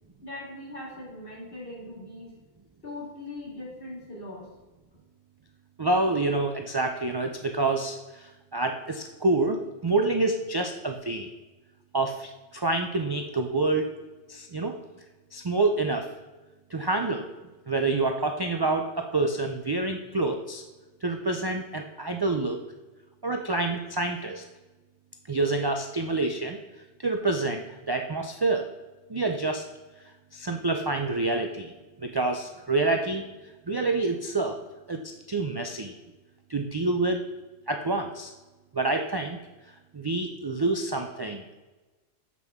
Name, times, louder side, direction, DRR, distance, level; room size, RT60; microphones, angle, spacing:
voice 1, 0.2-2.3 2.8-4.5, left 2 dB, 55° left, -4 dB, 2.4 m, -40 dB
voice 2, 5.8-9.6 9.8-11.3 11.9-13.9 14.3-14.8 15.3-16.1 16.7-17.2 17.7-20.6 21.0-22.6 23.2-24.4 25.3-26.6 27.0-28.7 29.1-29.7 30.3-31.7 32.0-33.2 33.7-34.6 34.9-35.9 36.5-37.2 37.7-38.3 38.7-39.4 39.9-41.4, right 2 dB, 40° right, 4 dB, 0.3 m, -27 dB
7.3 x 6.1 x 3.6 m, 1.2 s
omnidirectional pair, 1.1 m